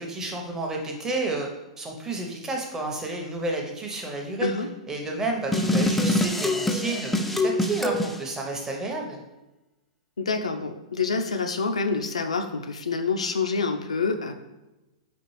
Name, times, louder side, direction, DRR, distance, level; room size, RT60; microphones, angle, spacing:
voice 1, 0.0-1.5 1.8-4.5 4.9-9.2, right 2 dB, 15° right, 1 dB, 0.7 m, -31 dB
sound 1, 5.5-8.2, left 1 dB, 5° left, 0.3 m, -24 dB
voice 2, 10.2-14.3, left 4 dB, 80° left, 6 dB, 0.4 m, -27 dB
5.1 x 2.4 x 3.1 m, 1.0 s
figure-of-eight pair, 105°, 3 cm